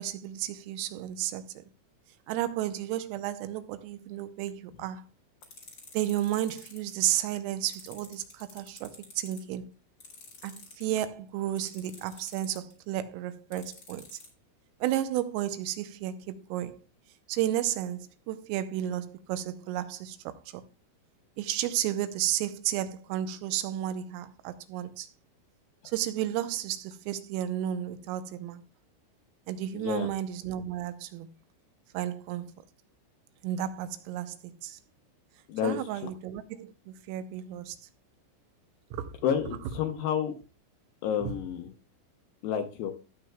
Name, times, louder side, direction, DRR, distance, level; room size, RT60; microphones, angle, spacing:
voice 1, 0.0-1.4 2.3-5.0 5.9-9.7 10.4-14.1 14.8-16.8 17.3-20.2 20.5-20.6 21.4-25.1 25.9-28.6 29.5-31.3 32.0-32.5 33.4-34.8 35.6-37.8 38.9-39.2 41.2-41.3, right 12 dB, 85° right, 3.3 m, -32 dB
sound 1, 5.4-6.9 7.7-9.4 10.0-10.8 11.6-12.7 13.5-14.3, left 4 dB, 30° left, 2.5 m, -48 dB
voice 2, 29.7-30.1 35.5-36.1 39.2-40.4 41.0-41.7 42.4-42.9, left 8 dB, 80° left, 2.5 m, -30 dB
17.0 x 6.9 x 2.3 m
omnidirectional pair, 5.8 m